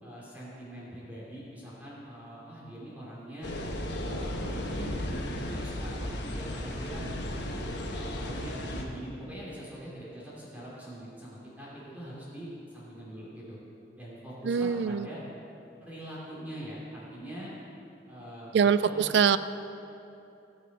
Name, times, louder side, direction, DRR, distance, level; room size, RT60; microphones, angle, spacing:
voice 1, 0.0-3.5 4.1-7.1 7.9-13.6 14.0-15.2 15.8-17.5 18.1-18.6 18.8-19.1, right 1 dB, 10° right, -8 dB, 3.1 m, -43 dB
sound 1, 3.4-8.8, left 1 dB, 65° left, 1.3 m, -35 dB
voice 2, 14.4-15.1 18.5-19.4, right 6 dB, 65° right, 14 dB, 0.4 m, -23 dB
17.0 x 6.4 x 5.4 m, 2.9 s
head